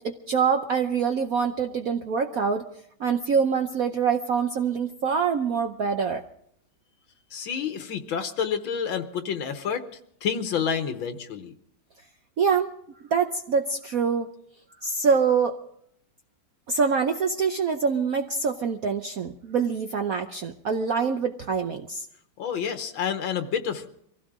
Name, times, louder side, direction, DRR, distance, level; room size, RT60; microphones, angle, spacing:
voice 1, 0.0-2.7 3.0-6.2 12.4-12.7 13.1-14.3 14.8-15.6 16.7-22.0, right 6 dB, 55° right, 5 dB, 1.0 m, -25 dB
voice 2, 7.3-11.5 22.4-23.9, left 7 dB, 75° left, 8 dB, 1.9 m, -29 dB
24.5 x 16.0 x 3.7 m, 0.70 s
omnidirectional pair, 2.2 m